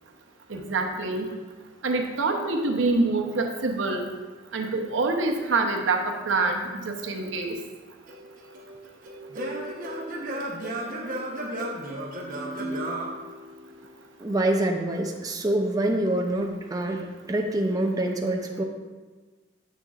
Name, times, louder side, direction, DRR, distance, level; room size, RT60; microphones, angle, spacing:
voice 1, 0.5-1.3 1.8-4.1 4.5-7.5, right 3 dB, 85° right, 2 dB, 0.8 m, -26 dB
Singing / Plucked string instrument, 8.1-13.9, right 1 dB, 50° right, 1.0 m, -34 dB
voice 2, 14.2-17.0 17.3-18.6, right 1 dB, 20° right, 1 dB, 0.5 m, -25 dB
7.5 x 6.7 x 2.4 m, 1.3 s
head